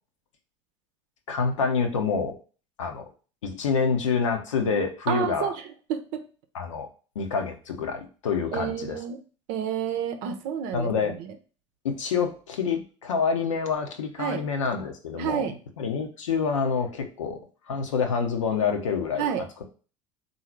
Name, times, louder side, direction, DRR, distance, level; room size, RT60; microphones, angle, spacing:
voice 1, 1.3-2.4 2.8-3.1 3.4-5.5 6.5-6.9 7.1-9.0 10.7-11.2 11.8-15.5 15.8-17.4 17.7-19.3, left 5 dB, 75° left, 5 dB, 0.8 m, -27 dB
voice 2, 5.1-5.5 5.9-6.2 8.5-9.2 9.5-11.3 14.2-14.4 15.2-15.5 19.2-19.4, right 8 dB, 55° right, 7 dB, 0.7 m, -29 dB
3.8 x 2.7 x 4.5 m, 0.37 s
figure-of-eight pair, 70°, 16 cm